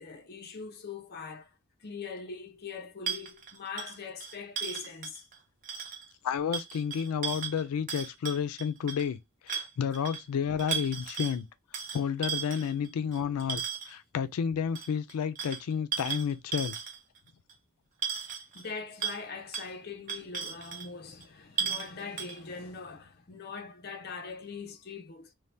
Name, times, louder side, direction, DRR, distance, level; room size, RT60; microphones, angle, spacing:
voice 1, 0.0-1.5 1.8-5.3 18.5-25.3, left 5 dB, 45° left, 0.5 m, -42 dB
sound 1, 3.1-5.4 5.6-6.1 6.5-9.1 9.5-10.2 10.6-11.4 11.7-14.0 14.8-17.2 17.5-17.6 18.0-18.7 19.0-19.2 19.5-19.7 20.1-20.9 21.2-21.3 21.6-21.9 22.2-22.4, right 7 dB, 35° right, 0.6 m, -36 dB
voice 2, 6.2-9.2 9.4-11.5 11.9-16.8, left 7 dB, 90° left, 0.4 m, -31 dB
2.7 x 2.1 x 3.2 m
head